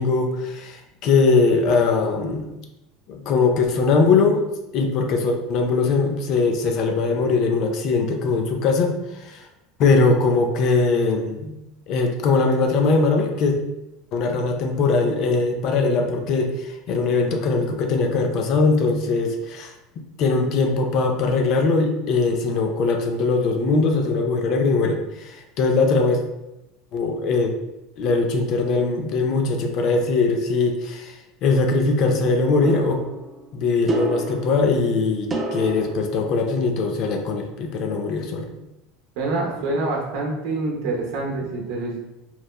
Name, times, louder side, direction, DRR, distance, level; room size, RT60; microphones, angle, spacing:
voice 1, 0.0-2.5 3.1-4.4 4.7-9.5 9.8-11.6 11.9-13.6 14.1-19.7 20.2-26.2 26.9-27.5 28.0-33.0 33.5-38.5, left 3 dB, 55° left, 4 dB, 0.4 m, -21 dB
sound 1, 32.6-37.1, right 2 dB, 25° right, 0.4 m, -31 dB
voice 2, 39.2-42.0, right 2 dB, 70° right, -1 dB, 0.7 m, -26 dB
3.0 x 2.0 x 2.2 m, 0.93 s
supercardioid pair, 95°, 0 cm